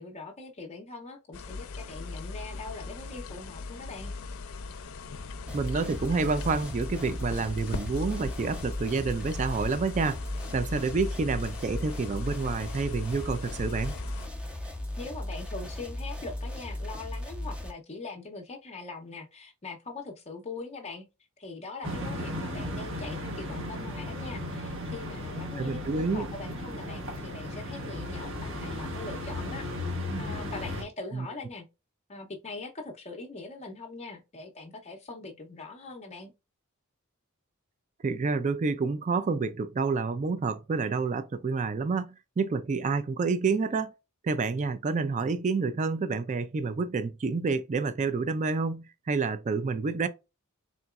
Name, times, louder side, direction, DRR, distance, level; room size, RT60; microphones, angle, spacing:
voice 1, 0.0-4.1 15.0-21.0 21.4-29.7 30.2-31.7 32.1-36.3, left 3 dB, 30° left, 0.6 m, -42 dB
sound 1, 1.3-14.3, left 3 dB, 70° left, 0.5 m, -39 dB
sound 2, 5.5-17.7, left 1 dB, 5° right, 0.7 m, -37 dB
voice 2, 5.5-10.2 10.5-13.9 25.6-26.3 31.1-31.3 38.0-43.9 44.2-50.1, right 4 dB, 35° right, 0.4 m, -28 dB
sound 3, 21.8-30.8, left 1 dB, 60° right, 1.3 m, -35 dB
3.9 x 3.7 x 2.3 m
head